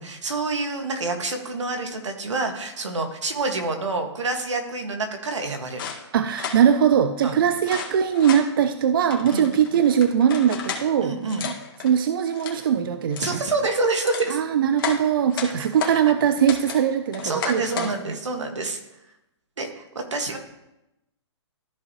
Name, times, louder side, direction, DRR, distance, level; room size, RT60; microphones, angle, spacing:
voice 1, 0.0-5.9 7.2-7.4 9.3-9.5 11.0-11.5 13.2-14.4 15.4-15.5 15.9-16.0 17.2-18.8 19.6-20.4, right 3 dB, 85° right, 4 dB, 1.7 m, -27 dB
sound 1, 5.8-6.6 7.6-8.5 9.1-10.9 11.3-11.9 12.3-12.6 13.1-13.4 13.8-14.3 14.8-16.0 16.5-16.8 17.1-17.9, left 7 dB, 50° left, 1.8 m, -33 dB
voice 2, 6.1-11.1 11.4-11.5 11.8-13.4 14.3-18.2, right 8 dB, 50° right, 9 dB, 0.5 m, -21 dB
13.5 x 5.3 x 3.0 m, 0.90 s
hypercardioid pair, 155°, 15 cm